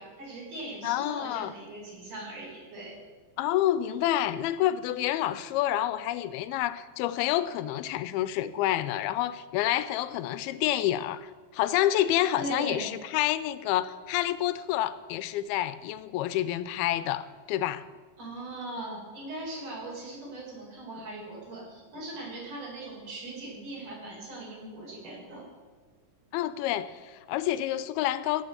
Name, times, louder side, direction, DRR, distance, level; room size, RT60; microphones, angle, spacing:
voice 1, 0.0-2.9 12.3-12.9 18.2-25.4, right 2 dB, 50° right, -4 dB, 6.1 m, -39 dB
voice 2, 0.8-1.5 3.4-17.8 26.3-28.4, left 13 dB, 80° left, 15 dB, 2.4 m, -28 dB
16.5 x 6.7 x 7.9 m, 1.5 s
omnidirectional pair, 4.6 m